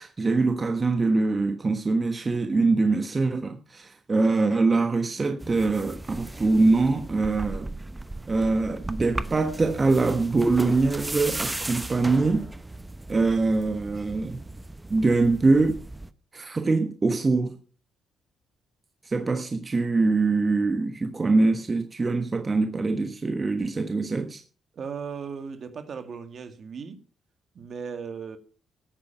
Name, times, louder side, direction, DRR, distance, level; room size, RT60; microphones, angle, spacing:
voice 1, 0.0-7.7 8.3-12.5 13.1-14.4 14.9-15.8 16.3-17.5 19.0-24.4, right 3 dB, 30° right, 1.3 m, -23 dB
sound 1, 5.4-16.1, right 2 dB, 15° right, 0.9 m, -37 dB
voice 2, 24.7-27.0 27.5-28.4, right 6 dB, 50° right, 1.9 m, -37 dB
14.5 x 8.9 x 5.7 m
cardioid pair, 90°, 0 cm